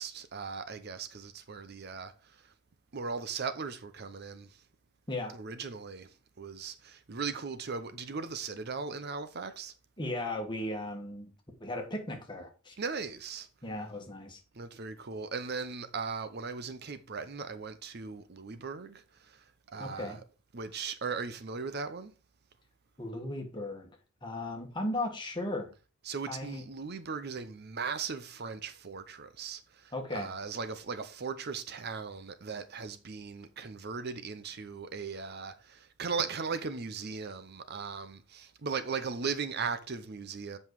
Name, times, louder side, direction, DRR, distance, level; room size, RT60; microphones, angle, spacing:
voice 1, 0.0-2.4 2.9-4.6 5.3-6.1 6.4-9.7 12.8-13.5 14.5-19.4 19.7-20.2 20.5-22.1 26.0-40.6, right 5 dB, 50° right, 0.7 m, -38 dB
voice 2, 10.0-11.3 11.6-12.8 13.6-14.4 19.8-20.2 23.0-23.9 24.2-25.7 26.3-26.6 29.9-30.3, left 1 dB, 20° left, 1.6 m, -36 dB
7.8 x 5.4 x 4.7 m
head